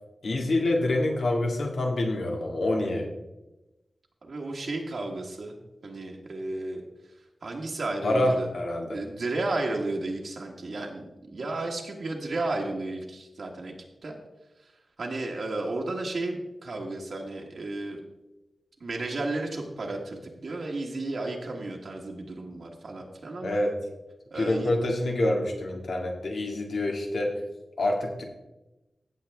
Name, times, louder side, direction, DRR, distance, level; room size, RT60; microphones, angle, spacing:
voice 1, 0.2-3.1 8.0-9.0 23.4-23.8 24.3-27.4 27.8-28.2, left 1 dB, 80° left, 1 dB, 1.9 m, -26 dB
voice 2, 4.2-5.6 5.8-6.8 7.4-8.5 8.9-11.0 11.3-13.7 14.0-14.2 15.0-18.0 18.8-23.6 24.3-24.7, right 2 dB, 65° right, -1 dB, 1.3 m, -33 dB
16.0 x 6.8 x 3.4 m, 1.0 s
wide cardioid pair, 100°, 0 cm